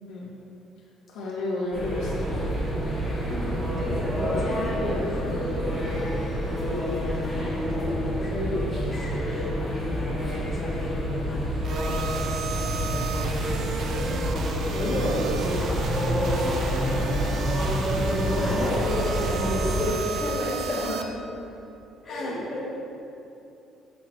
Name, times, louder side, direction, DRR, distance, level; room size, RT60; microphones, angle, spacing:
voice 1, 1.1-2.5 14.8-14.9 22.1-22.5, left 2 dB, 70° left, -5 dB, 1.8 m, -32 dB
sound 1, 1.7-19.9, equal, 5° right, 1.8 m, -28 dB
voice 2, 3.6-6.1 6.6-9.5 9.9-11.9 12.2-13.7 14.7-15.5 16.0-16.5 18.0-21.1 22.0-22.7, left 1 dB, 20° left, -7 dB, 1.6 m, -32 dB
sound 2, 11.6-21.0, right 6 dB, 45° right, 0.5 m, -34 dB
sound 3, 14.0-20.6, right 1 dB, 75° right, 1.7 m, -44 dB
7.2 x 6.1 x 4.7 m, 2.8 s
cardioid pair, 175°, 0 cm